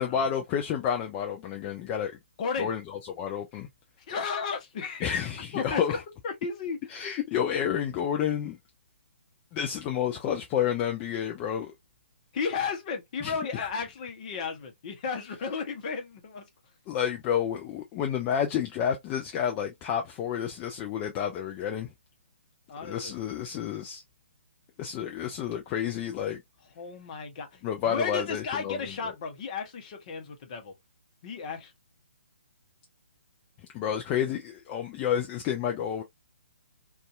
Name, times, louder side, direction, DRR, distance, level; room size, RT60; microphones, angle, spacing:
voice 1, 0.0-2.1 2.6-3.7 5.0-6.0 6.9-8.6 9.5-11.7 13.2-13.3 16.9-21.9 22.8-24.0 24.8-26.4 27.6-28.9 33.7-36.0, left 8 dB, 20° left, 0.3 m, -30 dB
voice 2, 2.4-2.7 4.1-5.0 5.5-6.0 6.2-6.8 12.3-16.4 22.7-23.1 26.8-30.7 31.2-31.7, left 5 dB, 40° left, 0.8 m, -34 dB
2.6 x 2.3 x 2.3 m
figure-of-eight pair, 135°, 6 cm